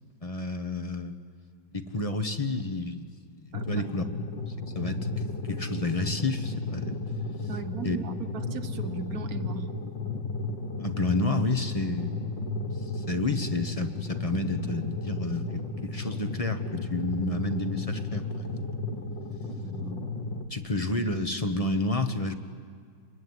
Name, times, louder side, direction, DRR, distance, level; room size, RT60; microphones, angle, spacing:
voice 1, 0.2-1.1 1.7-3.0 3.4-4.0 4.5-7.0 7.4-7.5 7.8-8.0 10.8-12.2 12.7-18.7 20.5-22.3, left 2 dB, 20° left, 8 dB, 1.1 m, -30 dB
sound 1, 3.5-20.5, left 2 dB, 65° left, 2.3 m, -34 dB
voice 2, 3.5-3.9 7.5-9.7 19.6-20.0, right 5 dB, 50° right, 9 dB, 1.6 m, -38 dB
27.5 x 22.0 x 9.7 m, 2.1 s
omnidirectional pair, 2.2 m